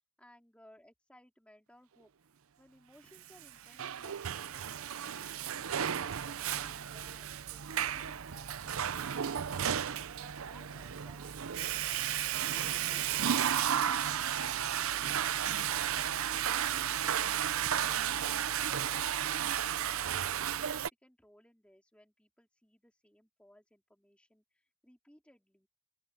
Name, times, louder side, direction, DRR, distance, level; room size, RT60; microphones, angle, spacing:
voice 1, 0.2-2.1 2.6-11.4 17.8-25.7, equal, 5° left, 3.8 m, -62 dB
Water / Toilet flush, 3.4-20.9, right 9 dB, 70° right, 0.6 m, -33 dB
open air
head